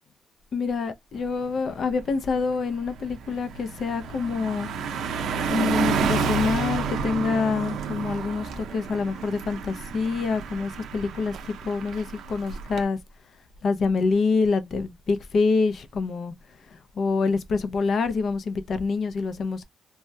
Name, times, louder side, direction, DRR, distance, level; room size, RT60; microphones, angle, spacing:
voice 1, 0.5-4.7 5.5-13.0 13.6-16.3 16.7-19.6, left 4 dB, 55° left, 0.5 m, -26 dB
Car passing by, 1.2-1.5 1.9-12.8, right 5 dB, 80° right, 0.5 m, -30 dB
3.3 x 2.2 x 2.6 m
cardioid pair, 105°, 0 cm